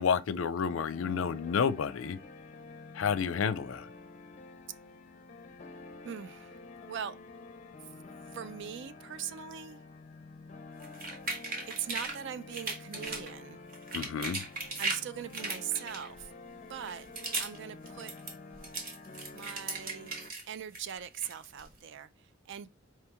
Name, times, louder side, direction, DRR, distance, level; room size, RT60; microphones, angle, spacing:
voice 1, 0.0-2.2 2.9-3.9 13.9-14.4, left 6 dB, 90° left, 0.4 m, -30 dB
sound 1, 0.7-20.3, left 3 dB, 40° left, 0.5 m, -49 dB
voice 2, 6.0-6.6 6.9-7.2 8.3-9.8 11.6-13.6 14.8-16.3 16.7-17.1 17.4-18.1 19.3-20.1 20.5-22.1 22.5-22.7, right 9 dB, 65° right, 0.4 m, -40 dB
sound 2, 10.8-12.2 12.5-13.3 13.7-15.0 15.3-16.3 16.8-17.6 17.9-20.4 20.7-21.7, right 3 dB, 50° right, 1.2 m, -37 dB
4.6 x 2.9 x 3.4 m
head